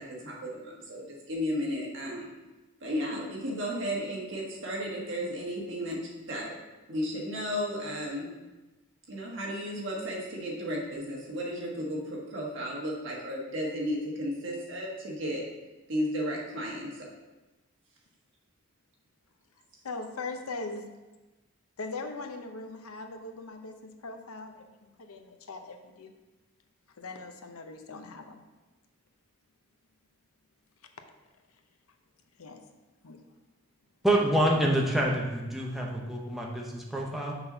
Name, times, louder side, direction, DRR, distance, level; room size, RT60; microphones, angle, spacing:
voice 1, 0.0-2.3 2.8-6.0 6.3-6.5 6.9-8.3 9.1-15.4 15.9-17.1, equal, 60° right, -3 dB, 1.6 m, -34 dB
voice 2, 19.8-20.9 21.8-26.1 27.0-28.4 32.4-32.6 33.0-33.2, left 3 dB, 85° left, 6 dB, 0.7 m, -40 dB
voice 3, 34.0-37.3, right 1 dB, ahead, -3 dB, 0.7 m, -27 dB
5.9 x 4.1 x 5.5 m, 1.1 s
head